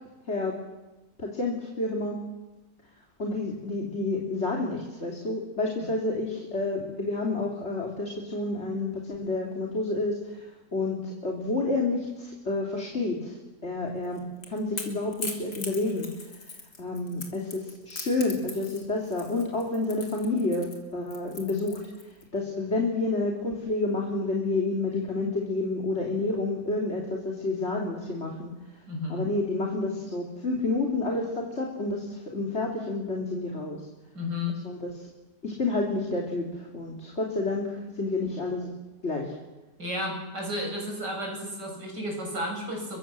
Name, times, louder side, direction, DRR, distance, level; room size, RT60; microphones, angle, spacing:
voice 1, 1.2-2.2 3.2-13.4 13.6-14.2 14.5-16.1 16.8-21.8 22.3-28.5 29.1-33.8 34.6-34.9 35.4-38.7 39.0-39.3, left 2 dB, 40° left, -1 dB, 3.3 m, -29 dB
Crackle / Crack, 14.0-22.2, left 3 dB, 70° left, 3.9 m, -40 dB
voice 2, 28.9-29.3 34.1-34.6 39.8-43.0, left 1 dB, 80° right, 1 dB, 8.3 m, -32 dB
29.0 x 23.5 x 7.6 m, 1.1 s
omnidirectional pair, 1.8 m